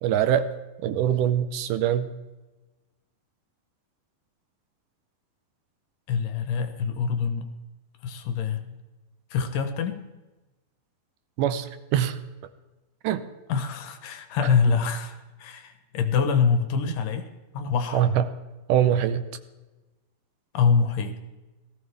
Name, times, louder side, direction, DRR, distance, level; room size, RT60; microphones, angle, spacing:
voice 1, 0.0-0.5 0.8-2.1 11.4-12.2 13.0-13.2 17.9-18.2 18.7-19.2, right 10 dB, 80° right, 11 dB, 2.2 m, -23 dB
voice 2, 6.1-7.5 8.0-8.8 9.3-10.0 13.5-17.3 17.5-18.1 20.5-21.2, left 6 dB, 75° left, 8 dB, 2.5 m, -25 dB
17.5 x 14.5 x 3.4 m, 1.1 s
omnidirectional pair, 3.9 m